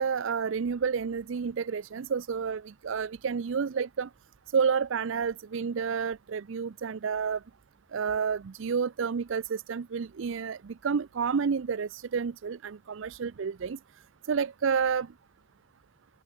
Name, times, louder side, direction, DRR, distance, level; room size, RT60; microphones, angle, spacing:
voice 1, 0.0-4.1 4.5-7.4 7.9-13.8 14.3-15.1, right 6 dB, 65° right, 0.4 m, -30 dB
open air
head